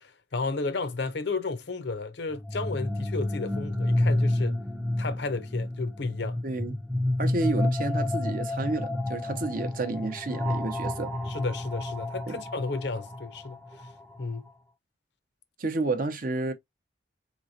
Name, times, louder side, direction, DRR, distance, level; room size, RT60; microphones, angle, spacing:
voice 1, 0.0-4.6 5.0-6.4 11.3-13.6 14.2-14.4, left 3 dB, 60° left, 0.6 m, -33 dB
sound 1, 2.3-14.2, left 1 dB, ahead, 0.4 m, -30 dB
voice 2, 6.4-6.8 7.2-11.1 12.3-12.4 15.6-16.5, right 3 dB, 45° right, 0.6 m, -30 dB
4.1 x 3.0 x 2.6 m
head